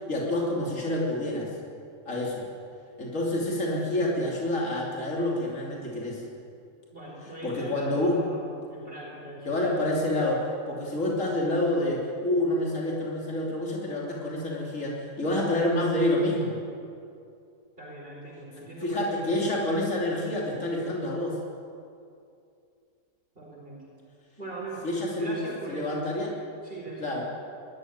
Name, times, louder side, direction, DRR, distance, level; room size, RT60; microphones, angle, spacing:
voice 1, 0.1-1.5 2.1-2.4 3.0-6.2 7.4-8.2 9.5-16.6 18.8-21.4 24.8-25.3 25.7-26.3 27.0-27.2, left 1 dB, 60° left, -3 dB, 3.5 m, -28 dB
voice 2, 6.9-9.6 17.8-19.4 23.4-23.9 24.4-24.9 25.1-26.1 26.6-27.2, right 1 dB, 40° right, -4 dB, 4.4 m, -41 dB
20.5 x 14.0 x 9.4 m, 2.5 s
omnidirectional pair, 1.5 m